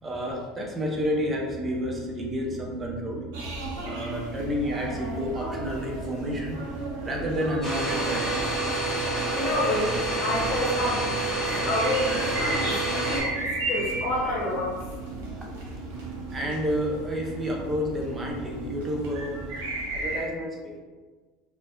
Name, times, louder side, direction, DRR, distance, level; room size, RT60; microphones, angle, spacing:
voice 1, 0.0-3.2 3.8-8.4 16.3-19.4 19.9-20.8, equal, 20° right, -1 dB, 0.5 m, -30 dB
sound 1, 0.9-19.6, right 4 dB, 45° right, 0.8 m, -41 dB
sound 2, 3.3-20.2, right 1 dB, 85° right, 0.7 m, -36 dB
Domestic sounds home sounds, 7.6-13.2, right 2 dB, 30° left, 1.2 m, -28 dB
voice 2, 9.3-14.7 15.0-15.2, left 1 dB, 70° left, -3 dB, 0.8 m, -29 dB
2.6 x 2.1 x 2.3 m, 1.4 s
supercardioid pair, 125°, 0 cm